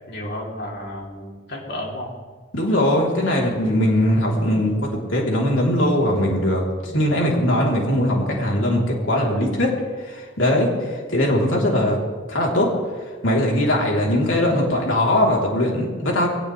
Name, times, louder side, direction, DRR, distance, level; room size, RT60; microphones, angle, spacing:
voice 1, 0.1-2.2, left 1 dB, 55° left, -2 dB, 3.4 m, -32 dB
voice 2, 2.5-9.7 10.0-12.0 12.3-12.7 13.2-16.3, left 1 dB, 90° left, -2 dB, 3.6 m, -20 dB
22.5 x 18.5 x 3.4 m, 1.5 s
head